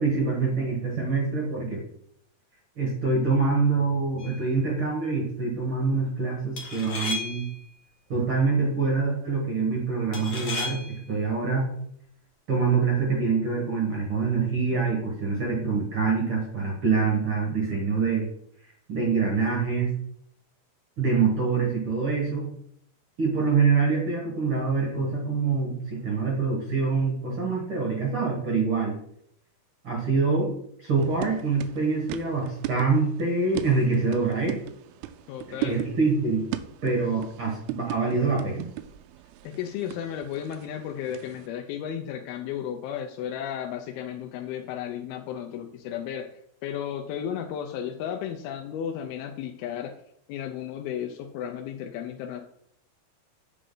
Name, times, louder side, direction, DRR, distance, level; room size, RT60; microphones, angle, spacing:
voice 1, 0.0-1.8 2.8-7.5 8.1-11.7 12.5-18.3 18.9-19.9 21.0-22.5 23.2-29.0 29.8-30.5 30.8-34.6 35.5-36.4 36.8-38.7, right 4 dB, 50° right, -3 dB, 1.8 m, -25 dB
sound 1, 4.2-4.5 6.6-7.6 10.1-11.0, left 3 dB, 70° left, 0.9 m, -34 dB
sound 2, 31.0-41.5, right 13 dB, 90° right, 2.5 m, -38 dB
voice 2, 35.3-35.8 39.4-46.3 46.6-49.9 50.3-52.4, left 9 dB, 85° left, 3 dB, 2.5 m, -34 dB
8.2 x 5.0 x 3.8 m, 0.71 s
omnidirectional pair, 4.3 m